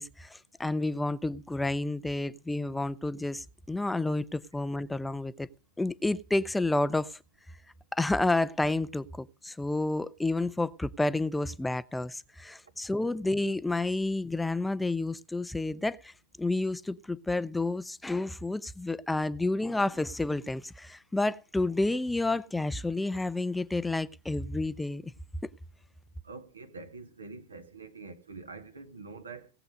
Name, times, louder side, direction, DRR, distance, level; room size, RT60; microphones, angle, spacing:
voice 1, 0.0-5.5 5.8-7.2 7.9-25.1, left 2 dB, 5° left, 0.5 m, -30 dB
voice 2, 26.2-29.5, right 4 dB, 75° right, 1.8 m, -45 dB
18.0 x 8.0 x 5.0 m
figure-of-eight pair, 90°, 0 cm